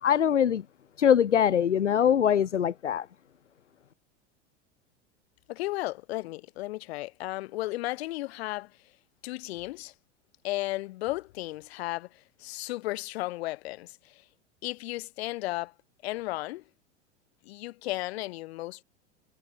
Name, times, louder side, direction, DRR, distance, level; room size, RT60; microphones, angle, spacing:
voice 1, 0.0-0.6 1.0-3.1, left 9 dB, 80° left, 1.1 m, -23 dB
voice 2, 5.5-8.7 9.2-9.9 10.4-14.2 14.6-15.7 16.0-16.6 17.4-18.8, left 18 dB, 60° left, 4.5 m, -34 dB
figure-of-eight pair, 90°, 36 cm